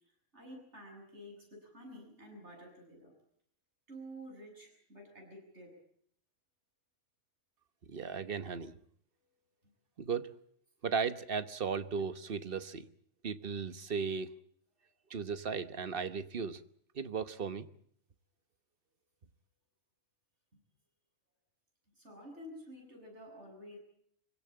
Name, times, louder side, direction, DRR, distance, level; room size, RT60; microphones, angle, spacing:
voice 1, 0.3-3.2 3.9-5.7 22.0-23.8, equal, 70° right, 7.8 m, -50 dB
voice 2, 7.9-8.8 10.0-10.3 10.8-12.9 13.2-14.3 15.1-16.6 16.9-17.7, right 5 dB, 50° right, 1.2 m, -36 dB
25.5 x 17.0 x 8.7 m
omnidirectional pair, 1.2 m